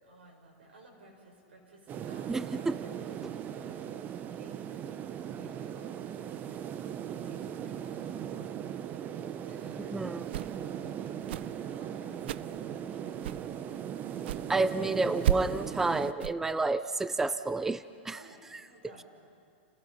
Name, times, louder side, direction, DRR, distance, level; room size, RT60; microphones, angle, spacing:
voice 1, 0.0-4.0 4.4-4.8 5.3-6.3 7.2-10.3 10.7-14.2 18.1-19.1, right 2 dB, 90° right, 0 dB, 6.9 m, -56 dB
sound 1, 1.9-16.1, right 9 dB, 30° right, 0.8 m, -39 dB
voice 2, 2.3-2.7 9.9-10.3 14.5-18.2, right 3 dB, 5° right, 14 dB, 0.4 m, -30 dB
sound 2, 10.2-10.7 11.2-11.6 12.2-12.6 13.2-13.5 14.2-14.5 15.2-15.6 16.2-16.3, right 12 dB, 70° right, 0.4 m, -33 dB
29.5 x 18.0 x 5.7 m, 2.3 s
hypercardioid pair, 135°, 6 cm